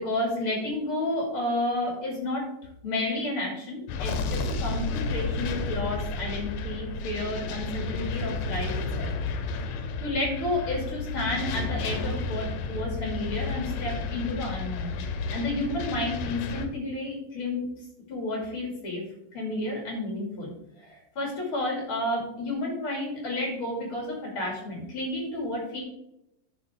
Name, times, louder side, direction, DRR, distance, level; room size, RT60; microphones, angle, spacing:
voice 1, 0.0-2.5 2.8-8.7 9.0-9.1 10.0-14.9 15.3-19.0 19.3-25.8, left 1 dB, 40° left, -1 dB, 2.9 m, -31 dB
sound 1, 3.9-16.7, left 3 dB, 75° left, 2.4 m, -32 dB
10.5 x 5.8 x 3.5 m, 0.80 s
omnidirectional pair, 4.1 m